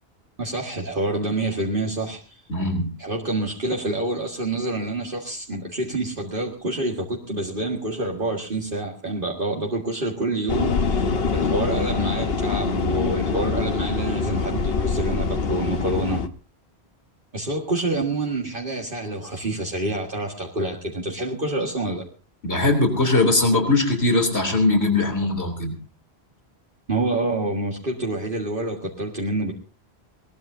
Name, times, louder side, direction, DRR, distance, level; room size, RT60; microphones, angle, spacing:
voice 1, 0.4-2.7 3.0-16.2 17.3-22.1 26.9-29.5, right 2 dB, 55° right, 0 dB, 2.1 m, -27 dB
voice 2, 2.5-2.9 22.4-25.7, left 2 dB, 90° left, 5 dB, 3.6 m, -20 dB
sound 1, 10.5-16.3, left 4 dB, 70° left, 1.3 m, -24 dB
21.5 x 18.5 x 2.7 m, 0.33 s
omnidirectional pair, 1.1 m